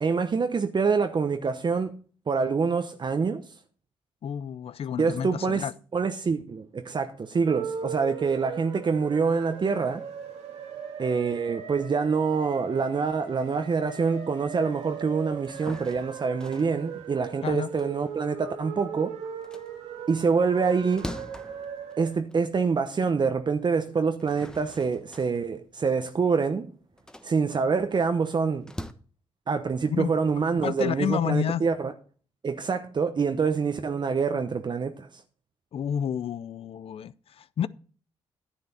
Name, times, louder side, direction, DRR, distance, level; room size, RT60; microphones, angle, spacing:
voice 1, 0.0-2.0 2.3-3.5 5.0-5.7 5.9-10.0 11.0-19.2 20.1-21.1 22.0-26.7 27.2-28.6 29.5-31.9 32.4-35.2, right 5 dB, 45° right, 0.9 m, -26 dB
voice 2, 4.2-5.7 17.4-17.7 29.9-30.1 30.6-31.6 35.7-37.7, left 9 dB, 60° left, 0.5 m, -30 dB
sound 1, 7.4-22.1, right 7 dB, 85° right, 1.8 m, -39 dB
sound 2, 15.3-18.9 19.3-22.8 23.2-23.3 24.0-28.9, left 1 dB, 5° left, 1.1 m, -44 dB
9.9 x 8.4 x 4.1 m
supercardioid pair, 55°, 11 cm